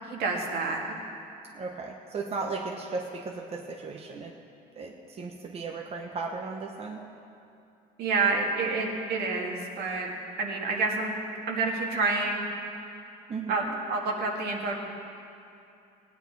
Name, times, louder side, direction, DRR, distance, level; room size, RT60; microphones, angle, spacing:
voice 1, 0.1-0.8 8.0-10.1 10.4-11.1 11.5-12.5 13.5-13.6 13.9-14.8, right 3 dB, 75° right, -1 dB, 2.0 m, -28 dB
voice 2, 1.5-4.3 4.7-7.1 13.3-13.7, right 4 dB, 35° right, 1 dB, 1.0 m, -36 dB
17.0 x 9.4 x 4.7 m, 2.6 s
cardioid pair, 110°, 17 cm